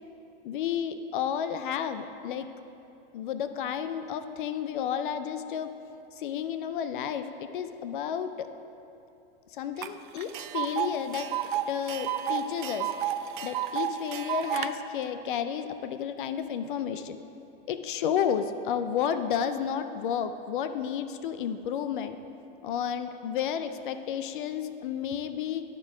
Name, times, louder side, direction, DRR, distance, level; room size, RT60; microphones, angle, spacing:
voice 1, 0.4-2.5 3.1-5.7 6.1-8.5 9.5-11.3 11.7-12.9 13.4-17.2 17.7-22.2 22.6-25.6, left 8 dB, 55° left, 10 dB, 0.5 m, -31 dB
Tick, 9.8-9.9 10.2-14.7, right 11 dB, 55° right, 0.4 m, -31 dB
11.5 x 4.4 x 6.0 m, 2.7 s
supercardioid pair, 170°, 30 cm